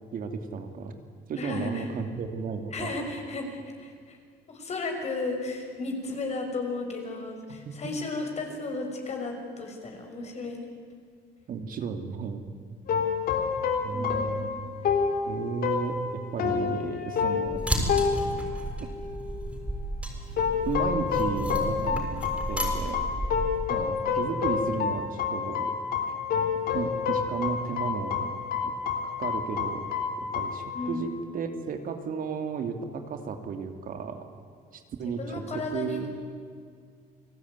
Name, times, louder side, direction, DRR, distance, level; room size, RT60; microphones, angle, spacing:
voice 1, 0.1-0.9 1.3-2.9 7.5-7.6 11.5-12.5 13.8-14.6 15.3-16.0 16.3-17.6 18.8-18.9 20.6-23.1 23.7-25.7 26.7-28.3 28.6-28.7 29.0-29.8 30.2-34.3 34.7-36.1, right 5 dB, 55° right, 6 dB, 2.7 m, -34 dB
voice 2, 1.4-1.9 2.7-4.2 4.5-10.6 13.9-14.5 30.7-31.0 35.0-36.1, left 3 dB, 40° left, 3 dB, 6.5 m, -34 dB
sound 1, 12.9-19.5 20.4-31.2, left 6 dB, 60° left, 3.8 m, -29 dB
sound 2, 17.5-23.6, right 1 dB, 5° right, 6.8 m, -33 dB
29.0 x 19.0 x 9.7 m, 2.1 s
cardioid pair, 110°, 17 cm